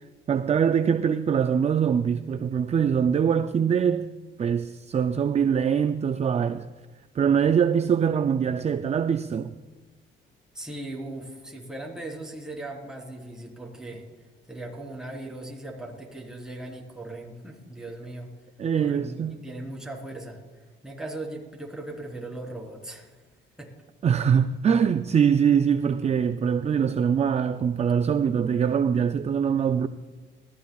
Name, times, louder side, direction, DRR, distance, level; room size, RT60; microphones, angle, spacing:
voice 1, 0.3-4.1 4.4-6.7 7.1-9.5 18.6-19.4 24.0-29.9, right 7 dB, 35° right, 0.4 m, -23 dB
voice 2, 10.5-14.1 14.5-18.3 18.8-20.4 20.8-23.2 23.6-23.8, right 2 dB, 5° right, 3.6 m, -38 dB
20.0 x 14.5 x 2.4 m
cardioid pair, 90°, 20 cm